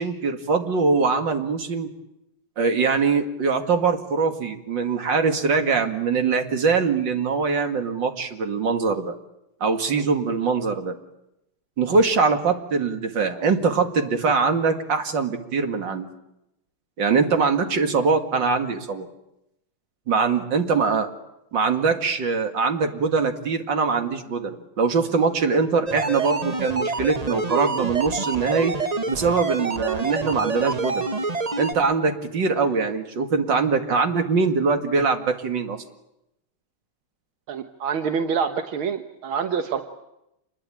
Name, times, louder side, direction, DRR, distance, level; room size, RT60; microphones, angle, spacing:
voice 1, 0.0-1.9 2.6-9.1 9.6-11.0 11.8-16.1 17.0-19.1 20.1-21.1 21.5-28.7 29.1-31.0 31.6-35.8, right 4 dB, 60° right, 6 dB, 2.8 m, -22 dB
sound 1, 25.9-31.7, right 3 dB, 25° right, 0.9 m, -27 dB
voice 2, 37.5-39.8, right 6 dB, 85° right, 7 dB, 2.1 m, -26 dB
28.0 x 20.5 x 9.0 m, 0.87 s
omnidirectional pair, 2.2 m